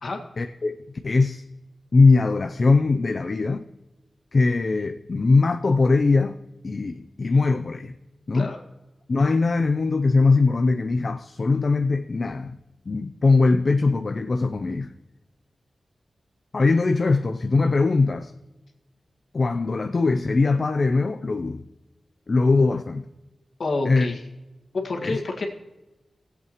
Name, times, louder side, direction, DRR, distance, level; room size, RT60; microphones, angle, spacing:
voice 1, 0.4-0.8 1.0-1.4 1.9-3.7 4.3-7.9 8.3-8.5 9.1-12.6 12.9-14.9 16.5-18.3 19.3-21.6 22.3-23.0 23.9-24.1 25.0-25.2, left 3 dB, 50° left, 0.5 m, -21 dB
voice 2, 23.6-24.2 24.7-25.5, left 3 dB, 65° left, 1.9 m, -28 dB
18.0 x 8.2 x 3.0 m
wide cardioid pair, 95°, 0 cm